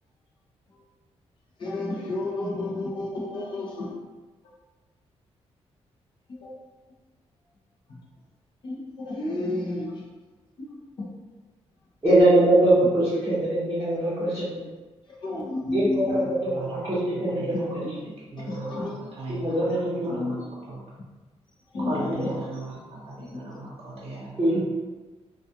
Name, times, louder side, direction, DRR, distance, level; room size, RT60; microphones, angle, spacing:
voice 1, 1.6-3.9 6.3-6.7 7.9-8.0 8.6-10.1 10.6-10.7 11.0-11.1 15.1-16.3 17.5-17.6 18.5-19.1 20.1-20.4 21.7-22.3 23.2-23.6, left 2 dB, 45° left, -4 dB, 0.6 m, -31 dB
voice 2, 12.0-14.6 15.7-17.8 19.3-20.3 22.0-22.3 24.4-24.6, right 1 dB, 15° right, -14 dB, 0.7 m, -22 dB
voice 3, 16.4-17.7 18.3-18.9 19.2-19.7 20.0-20.4 20.7-20.8 21.8-24.6, right 2 dB, 60° right, -6 dB, 0.7 m, -37 dB
2.3 x 2.3 x 2.7 m, 1.2 s
wide cardioid pair, 175°, 11 cm